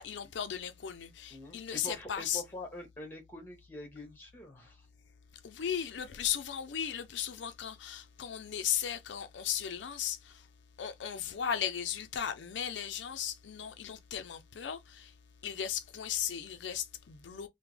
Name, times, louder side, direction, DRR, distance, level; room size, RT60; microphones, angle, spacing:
voice 1, 0.0-2.4 5.3-10.5 10.8-15.2 15.4-17.5, left 9 dB, 80° left, 0.4 m, -36 dB
voice 2, 1.3-4.9, left 1 dB, 10° left, 1.2 m, -45 dB
3.4 x 2.1 x 3.2 m
head